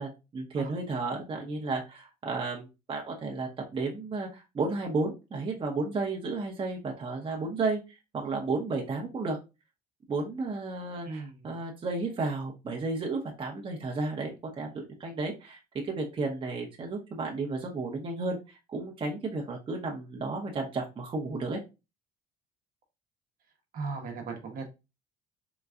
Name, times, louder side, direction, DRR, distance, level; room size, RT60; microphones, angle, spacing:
voice 1, 0.0-7.8 8.1-9.4 10.1-14.7 15.0-15.6 15.9-21.6, right 3 dB, 30° right, 0 dB, 0.8 m, -33 dB
voice 2, 11.0-11.5 23.7-24.7, right 4 dB, 55° right, 3 dB, 0.9 m, -37 dB
3.9 x 2.2 x 2.3 m, 0.26 s
cardioid pair, 110°, 17 cm